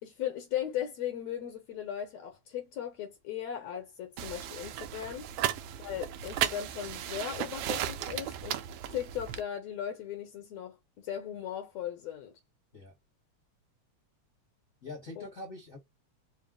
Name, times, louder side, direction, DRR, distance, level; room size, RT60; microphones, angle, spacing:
voice 1, 0.0-5.3 5.8-8.6 8.9-12.3 15.2-15.3, left 10 dB, 75° left, 2.0 m, -37 dB
sound 1, 4.2-9.4, right 11 dB, 85° right, 1.3 m, -35 dB
voice 2, 14.8-15.8, left 2 dB, 45° left, 1.1 m, -43 dB
4.7 x 2.0 x 3.5 m
omnidirectional pair, 3.3 m